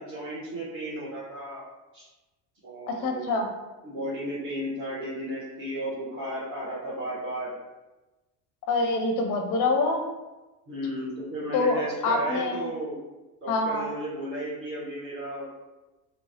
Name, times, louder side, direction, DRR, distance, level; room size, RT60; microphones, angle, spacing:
voice 1, 0.0-1.6 1.9-2.1 2.6-3.3 3.8-7.5 10.7-13.0 13.4-15.5, right 1 dB, 25° right, -9 dB, 1.0 m, -34 dB
voice 2, 3.0-3.5 8.7-10.0 11.5-12.7 13.5-13.9, left 3 dB, 40° left, 4 dB, 0.5 m, -25 dB
3.0 x 2.1 x 2.7 m, 1.1 s
hypercardioid pair, 75°, 50 cm